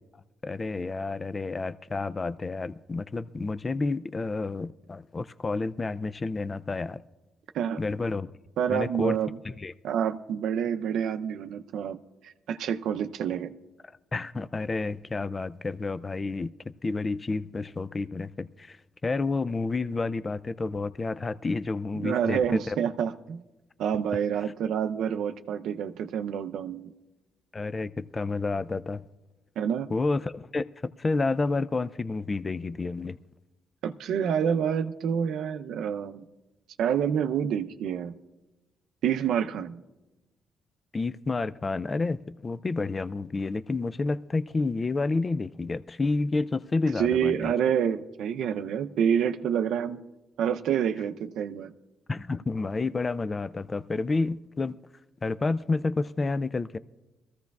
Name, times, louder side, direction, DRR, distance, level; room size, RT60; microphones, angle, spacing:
voice 1, 0.4-7.0 7.8-8.3 8.7-9.2 9.4-9.7 14.1-18.8 19.0-22.8 27.5-29.0 29.9-30.6 31.0-33.2 40.9-47.5 52.1-54.8 55.2-56.8, left 3 dB, 30° left, 0.3 m, -30 dB
voice 2, 8.6-9.4 9.8-12.0 12.2-13.5 22.0-23.4 23.8-26.9 29.6-29.9 33.8-36.2 36.8-38.1 39.0-39.8 47.0-50.0 50.4-51.7, right 8 dB, 75° right, 0.6 m, -28 dB
22.0 x 14.5 x 2.3 m
cardioid pair, 90°, 0 cm